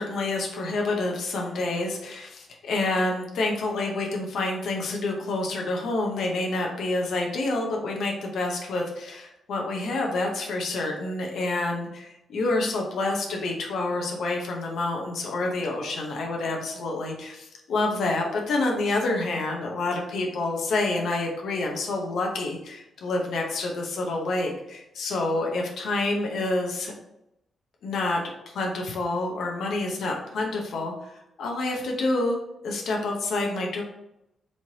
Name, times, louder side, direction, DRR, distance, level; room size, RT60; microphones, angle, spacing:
voice 1, 0.0-26.9 27.8-28.2 28.5-33.8, left 2 dB, 75° left, 0 dB, 0.7 m, -28 dB
4.3 x 3.0 x 2.8 m, 0.84 s
cardioid pair, 90°, 0 cm